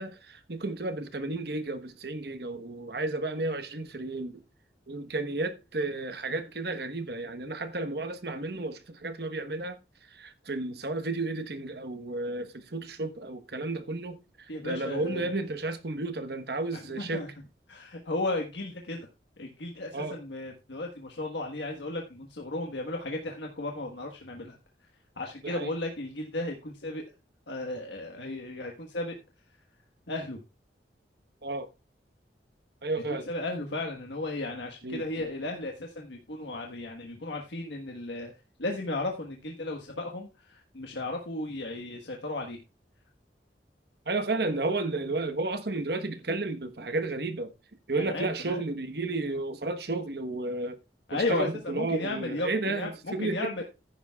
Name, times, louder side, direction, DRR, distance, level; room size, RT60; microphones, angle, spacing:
voice 1, 0.0-4.4 4.9-9.8 10.1-17.3 19.9-20.2 25.4-25.7 31.4-31.7 32.8-33.3 34.8-35.2 44.1-47.5 47.9-50.8 51.1-53.5, right 2 dB, 60° right, 1.2 m, -32 dB
voice 2, 14.5-15.4 16.7-17.3 17.7-19.1 19.4-24.6 25.2-27.0 27.5-29.2 30.1-30.4 33.1-38.3 38.6-42.6 48.0-48.6 51.1-53.6, left 2 dB, 85° left, 1.4 m, -35 dB
15.0 x 10.0 x 2.4 m
head